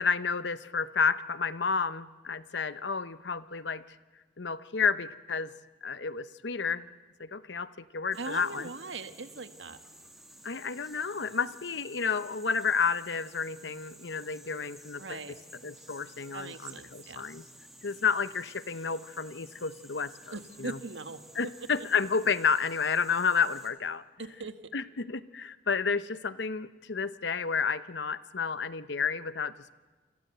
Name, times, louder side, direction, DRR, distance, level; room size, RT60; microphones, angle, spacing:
voice 1, 0.0-3.8 4.4-5.5 5.8-6.9 7.2-8.7 10.4-15.2 15.6-17.4 17.8-20.8 21.4-24.0 24.7-29.7, left 5 dB, 75° left, 14 dB, 0.9 m, -31 dB
sound 1, 8.1-23.7, right 1 dB, ahead, 2.8 m, -53 dB
voice 2, 8.1-9.8 15.0-15.4 16.3-17.2 20.3-21.5 21.8-21.9 24.2-24.5, right 3 dB, 85° right, 9 dB, 1.7 m, -40 dB
29.0 x 25.5 x 8.0 m, 1.2 s
head